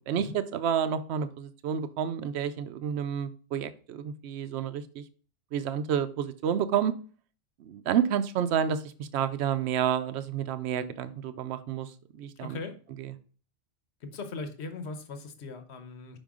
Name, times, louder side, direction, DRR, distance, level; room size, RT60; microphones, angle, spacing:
voice 1, 0.1-5.0 5.5-6.9 7.6-12.6, right 8 dB, 75° right, 12 dB, 0.9 m, -30 dB
voice 2, 12.4-12.8 14.0-16.2, left 3 dB, 75° left, 8 dB, 1.1 m, -39 dB
5.4 x 5.4 x 3.6 m, 0.40 s
omnidirectional pair, 1.1 m